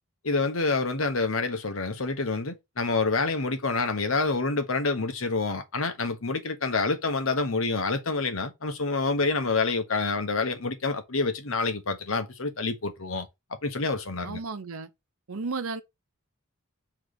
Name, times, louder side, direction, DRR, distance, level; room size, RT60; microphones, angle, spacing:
voice 1, 0.2-13.3 13.6-14.4, left 3 dB, 70° left, 1.2 m, -27 dB
voice 2, 14.2-14.9 15.3-15.8, right 4 dB, 80° right, 0.8 m, -33 dB
6.1 x 3.2 x 5.1 m
head